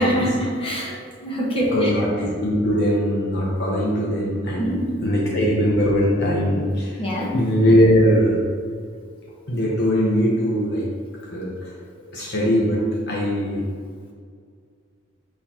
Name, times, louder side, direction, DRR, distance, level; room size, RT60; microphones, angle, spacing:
voice 1, 0.0-1.9 4.6-4.9 7.0-7.3, equal, 25° left, -4 dB, 1.2 m, -24 dB
voice 2, 1.7-7.0 7.3-8.4 9.5-10.9 11.3-11.7 12.1-13.6, equal, 55° left, -5 dB, 0.9 m, -21 dB
7.6 x 4.2 x 2.9 m, 2.1 s
head